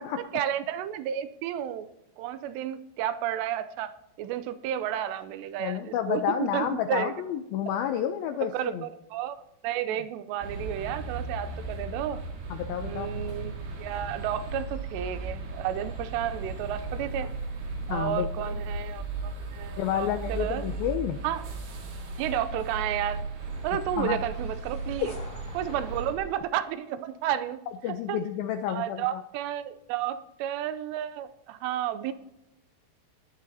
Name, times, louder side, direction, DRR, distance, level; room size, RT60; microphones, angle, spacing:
voice 1, 0.3-1.9 2.2-3.9 4.2-7.1 8.4-9.4 9.6-12.2 12.8-17.3 17.9-20.7 21.2-21.4 22.2-23.2 23.6-25.1 25.5-27.6 27.9-28.2 28.7-32.1, right 11 dB, 85° right, 12 dB, 2.8 m, -32 dB
voice 2, 5.6-8.9 12.5-13.1 17.9-18.6 19.8-21.2 24.0-24.2 27.8-29.2, left 10 dB, 85° left, 7 dB, 2.1 m, -30 dB
sound 1, 10.4-26.1, right 3 dB, 70° right, 4.0 m, -36 dB
sound 2, 23.4-27.5, left 2 dB, 40° left, 1.1 m, -50 dB
20.0 x 11.5 x 2.8 m, 0.91 s
omnidirectional pair, 4.9 m